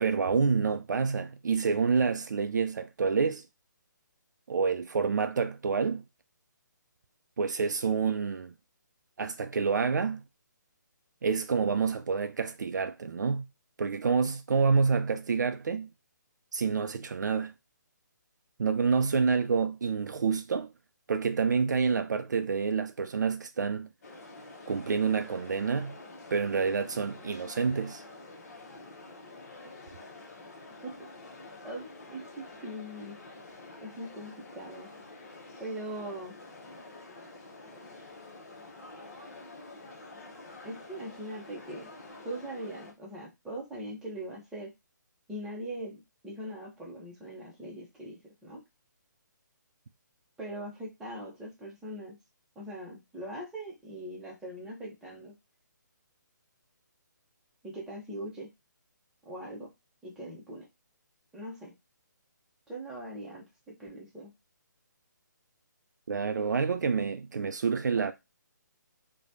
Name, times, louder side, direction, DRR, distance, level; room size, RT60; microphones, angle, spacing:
voice 1, 0.0-3.4 4.5-6.0 7.4-8.5 9.2-10.2 11.2-13.5 13.8-15.9 16.5-17.5 18.6-20.7 21.1-23.9 24.7-26.0 26.3-28.0 66.1-68.1, right 5 dB, 65° right, 0.4 m, -28 dB
sound 1, 24.0-42.9, left 2 dB, 50° left, 0.8 m, -48 dB
voice 2, 31.6-33.2 33.8-34.9 35.6-36.4 37.8-38.0 40.6-41.9 42.2-44.7 45.3-48.6 50.4-52.2 52.6-55.3 57.6-58.5 59.2-59.7 60.0-60.7 61.3-61.7 62.7-64.3, right 1 dB, 5° right, 0.7 m, -41 dB
3.1 x 2.2 x 2.6 m
figure-of-eight pair, 140°, 10 cm